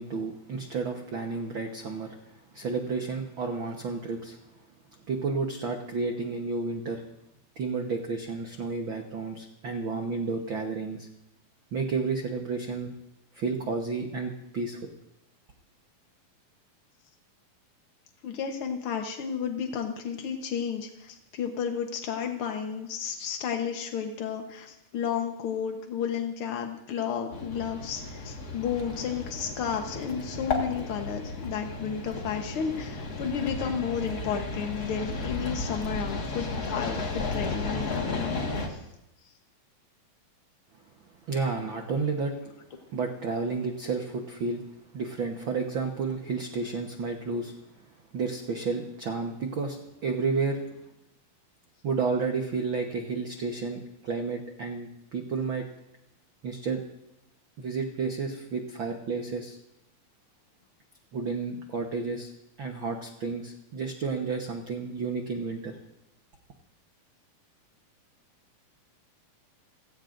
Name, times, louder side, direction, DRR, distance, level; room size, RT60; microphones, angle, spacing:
voice 1, 0.0-2.1 2.5-4.4 5.1-7.0 7.6-11.1 11.7-12.9 13.3-14.9 41.3-42.3 42.9-44.6 44.9-47.5 48.1-49.8 50.0-50.6 51.8-55.7 56.4-56.8 57.6-59.6 61.1-62.3 62.6-65.8, right 4 dB, 80° right, 3 dB, 1.1 m, -31 dB
voice 2, 18.2-38.8, left 7 dB, 75° left, 4 dB, 1.2 m, -32 dB
sound 1, 27.3-38.7, left 3 dB, 40° left, 1.5 m, -34 dB
30.0 x 16.5 x 2.6 m, 0.87 s
omnidirectional pair, 4.1 m